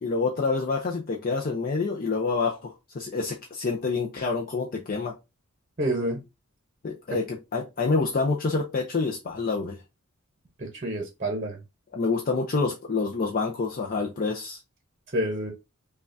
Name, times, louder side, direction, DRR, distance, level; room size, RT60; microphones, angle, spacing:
voice 1, 0.0-5.1 6.8-9.8 11.9-14.6, left 4 dB, 40° left, 0.5 m, -27 dB
voice 2, 5.8-6.2 10.6-11.6 15.1-15.5, right 1 dB, 35° right, 0.8 m, -28 dB
5.5 x 2.3 x 2.6 m
head